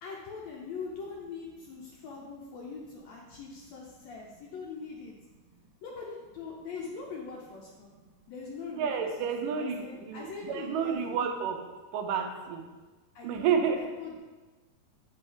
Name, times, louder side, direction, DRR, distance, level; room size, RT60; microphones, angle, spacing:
voice 1, 0.0-5.1 5.8-7.9 8.3-8.9 9.2-11.2 13.1-14.2, left 5 dB, 75° left, -2 dB, 1.6 m, -42 dB
voice 2, 8.8-11.6 11.9-12.6 13.2-13.8, right 7 dB, 90° right, 4 dB, 2.3 m, -30 dB
8.7 x 5.3 x 3.4 m, 1.3 s
omnidirectional pair, 3.9 m